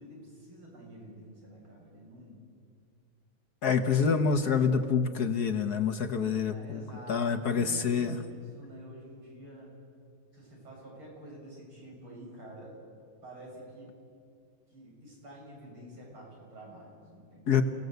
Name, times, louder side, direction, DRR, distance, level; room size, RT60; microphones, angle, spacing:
voice 1, 0.0-2.4 3.8-4.3 6.5-9.7 10.3-12.8 13.2-13.9 14.7-17.6, right 1 dB, 85° right, -3 dB, 8.5 m, -48 dB
voice 2, 3.6-6.8 7.1-8.2 17.5-17.6, left 6 dB, 55° left, 7 dB, 1.5 m, -27 dB
29.5 x 18.0 x 8.0 m, 2.3 s
omnidirectional pair, 2.3 m